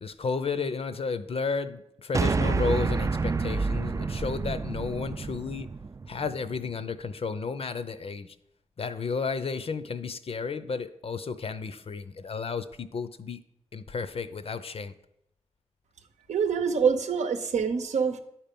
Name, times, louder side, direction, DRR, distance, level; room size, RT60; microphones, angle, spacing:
voice 1, 0.0-5.7 6.1-8.3 8.8-13.4 13.7-14.9, left 5 dB, 55° left, 12 dB, 0.6 m, -32 dB
sound 1, 2.1-6.6, right 4 dB, 25° right, 0.3 m, -28 dB
voice 2, 16.3-18.2, right 6 dB, 85° right, 7 dB, 0.8 m, -25 dB
9.9 x 4.4 x 5.3 m, 0.82 s
cardioid pair, 55°, 12 cm